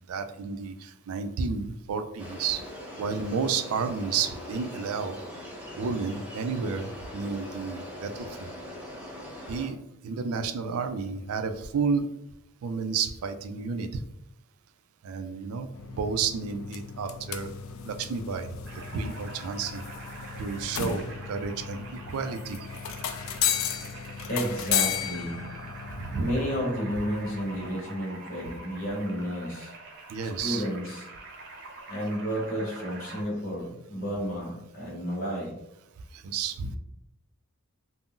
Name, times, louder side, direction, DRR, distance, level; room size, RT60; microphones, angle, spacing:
voice 1, 0.1-2.6 3.0-5.2 5.7-6.9 7.1-8.5 9.5-9.8 10.0-12.1 12.6-13.9 15.0-17.5 17.8-18.5 18.9-19.8 20.4-22.6 26.0-26.3 30.1-30.6 36.1-36.8, right 5 dB, 90° right, 8 dB, 0.4 m, -31 dB
sound 1, 2.2-9.7, left 1 dB, 5° right, 0.6 m, -41 dB
sound 2, 15.7-27.7, left 8 dB, 65° left, 0.3 m, -34 dB
sound 3, 18.6-33.2, right 2 dB, 55° right, 0.7 m, -45 dB
voice 2, 24.3-25.4 26.2-29.7 30.4-31.0 31.9-35.5, equal, 45° left, -5 dB, 0.8 m, -31 dB
2.5 x 2.1 x 3.6 m, 0.82 s
head